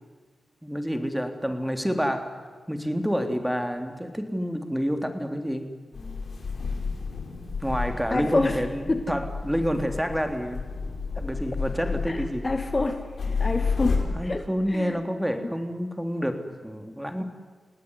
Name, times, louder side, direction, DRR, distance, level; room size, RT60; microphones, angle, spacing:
voice 1, 0.6-2.4 2.7-5.7 7.6-10.7 11.2-12.5 14.1-17.2, equal, 5° right, 6 dB, 3.4 m, -28 dB
sound 1, 5.9-14.0, left 4 dB, 65° left, 5.4 m, -31 dB
voice 2, 8.1-8.6 8.9-9.1 12.1-12.2 12.4-13.0 13.4-14.4 14.7-14.9, left 2 dB, 35° left, 8 dB, 2.1 m, -26 dB
29.0 x 18.0 x 9.9 m, 1.5 s
cardioid pair, 50°, 0 cm